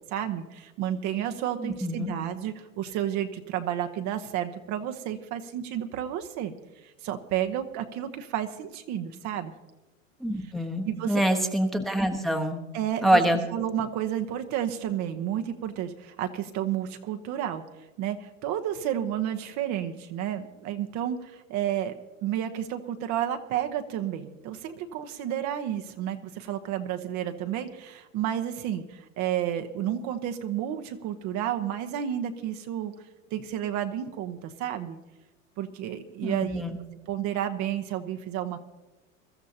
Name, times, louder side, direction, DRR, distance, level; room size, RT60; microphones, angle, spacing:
voice 1, 0.1-6.5 7.0-9.5 10.8-11.2 12.7-13.2 13.5-17.6 18.0-22.0 22.2-32.9 33.3-35.0 35.6-36.6 37.1-38.6, right 10 dB, 45° right, 7 dB, 1.1 m, -31 dB
voice 2, 1.6-2.1 10.2-12.6 13.0-13.4 36.2-36.7, right 1 dB, ahead, 3 dB, 1.2 m, -25 dB
23.0 x 13.5 x 2.9 m, 1.1 s
hypercardioid pair, 105°, 40 cm